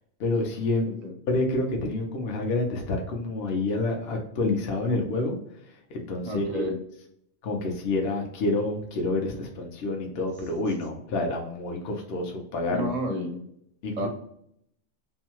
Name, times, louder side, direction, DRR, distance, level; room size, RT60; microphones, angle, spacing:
voice 1, 0.2-0.9 1.3-5.4 5.7-6.7 7.4-12.9 13.8-14.1, left 2 dB, 55° left, 2 dB, 0.8 m, -28 dB
voice 2, 6.3-6.8 10.1-10.2 12.7-13.4 14.0-14.1, equal, 50° right, 2 dB, 0.5 m, -31 dB
2.7 x 2.2 x 2.9 m, 0.72 s
omnidirectional pair, 1.4 m